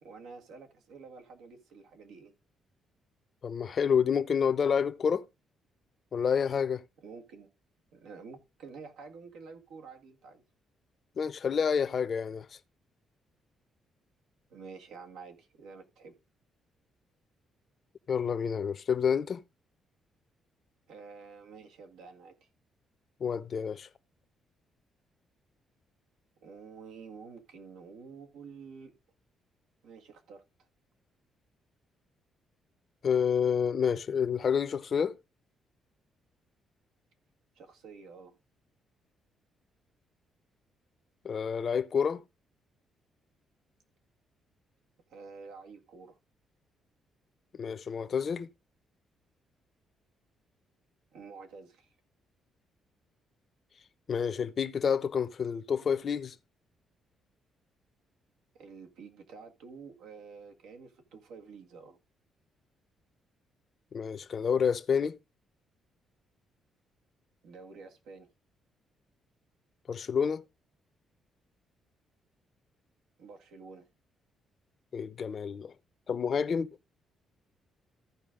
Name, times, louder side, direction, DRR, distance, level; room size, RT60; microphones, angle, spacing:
voice 1, 0.0-2.3 7.0-7.5 7.9-10.4 14.5-16.1 20.9-22.5 26.4-28.9 29.8-30.4 37.6-38.4 45.1-46.2 51.1-51.9 58.5-62.0 67.4-68.3 73.2-73.9, right 5 dB, 85° right, 1.8 m, -49 dB
voice 2, 3.4-5.3 6.1-6.8 11.2-12.5 18.1-19.4 23.2-23.9 33.0-35.1 41.2-42.2 47.6-48.5 54.1-56.3 63.9-65.2 69.9-70.4 74.9-75.7 76.1-76.7, left 7 dB, 50° left, 0.8 m, -28 dB
14.5 x 5.0 x 3.7 m
cardioid pair, 90°, 0 cm